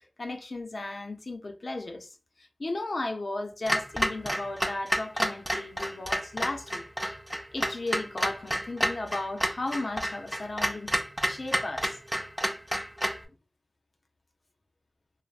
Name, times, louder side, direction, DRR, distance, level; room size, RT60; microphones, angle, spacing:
voice 1, 0.2-2.1 2.6-6.8 7.5-10.9 11.2-11.9, left 2 dB, 75° left, 0.5 m, -35 dB
Clock, 3.7-13.2, equal, 10° right, 0.5 m, -30 dB
3.3 x 2.0 x 2.4 m
wide cardioid pair, 50°, 0 cm